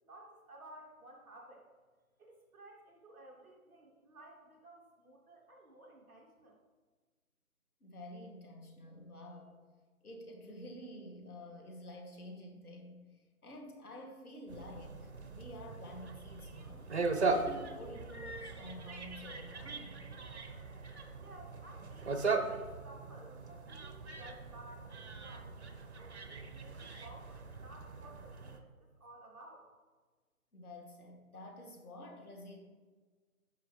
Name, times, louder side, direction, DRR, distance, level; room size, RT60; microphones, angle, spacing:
voice 1, 0.0-1.7 2.2-6.5 21.2-25.5 25.9-29.7, right 1 dB, 10° right, -7 dB, 1.7 m, -55 dB
voice 2, 7.8-9.6 10.0-13.0 13.4-16.9 17.2-19.9 30.5-32.6, left 1 dB, 80° left, 1 dB, 2.4 m, -49 dB
sound 1, 14.5-28.6, right 4 dB, 50° right, 1.0 m, -39 dB
16.0 x 5.6 x 3.2 m, 1.4 s
figure-of-eight pair, 160°, 44 cm